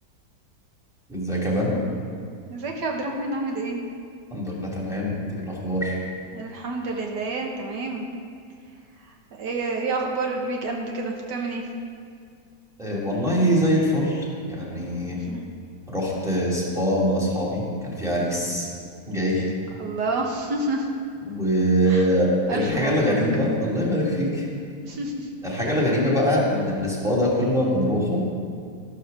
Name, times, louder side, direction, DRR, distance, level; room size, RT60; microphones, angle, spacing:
voice 1, 1.1-1.8 4.3-6.0 12.8-15.2 15.9-18.7 19.1-19.5 21.3-24.5 25.4-28.2, equal, ahead, -6 dB, 2.4 m, -23 dB
voice 2, 2.5-3.8 6.3-8.0 9.4-11.6 15.3-15.4 19.8-20.9 21.9-22.0 22.5-23.2 24.8-25.3, right 2 dB, 80° right, 1 dB, 1.7 m, -28 dB
12.5 x 6.4 x 6.6 m, 2.3 s
omnidirectional pair, 1.8 m